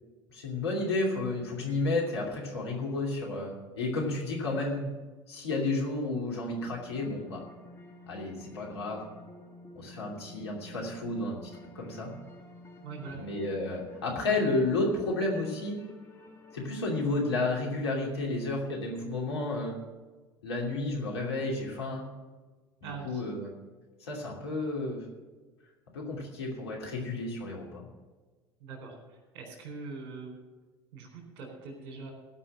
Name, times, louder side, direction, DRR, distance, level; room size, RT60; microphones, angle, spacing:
voice 1, 0.3-4.9 5.3-7.4 8.1-9.1 9.7-11.4 11.7-12.1 13.2-15.8 16.5-19.8 20.4-22.1 22.8-23.5 24.0-25.0 25.9-27.9, left 2 dB, 80° left, -1 dB, 2.7 m, -31 dB
sound 1, 6.5-17.8, left 2 dB, 15° left, 2.3 m, -51 dB
voice 2, 12.8-13.2 22.8-23.2 28.6-30.4 30.9-32.1, right 4 dB, 60° right, 2 dB, 4.0 m, -42 dB
17.0 x 5.6 x 7.5 m, 1.3 s
figure-of-eight pair, 65°, 14 cm